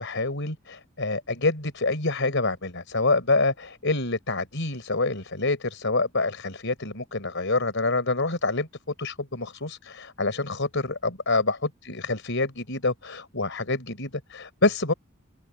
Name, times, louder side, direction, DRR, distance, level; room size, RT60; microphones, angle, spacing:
voice 1, 0.0-8.7 9.0-14.9, left 3 dB, 60° left, 5.1 m, -27 dB
open air
head